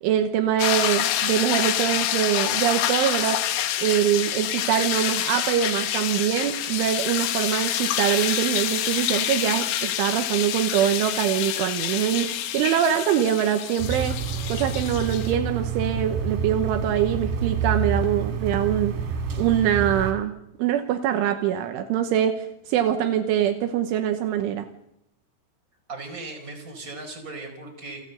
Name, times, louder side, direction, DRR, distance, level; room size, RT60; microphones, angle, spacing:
voice 1, 0.0-3.4 3.8-14.2 14.5-19.0 19.4-20.3 20.6-24.7, right 10 dB, 80° right, 7 dB, 3.4 m, -24 dB
sound 1, 0.6-15.3, left 11 dB, 90° left, 4.2 m, -27 dB
sound 2, 13.8-20.1, right 5 dB, 60° right, 4.8 m, -28 dB
voice 2, 25.9-28.0, right 3 dB, 15° right, 3 dB, 4.9 m, -37 dB
28.5 x 14.0 x 8.1 m, 0.81 s
omnidirectional pair, 5.8 m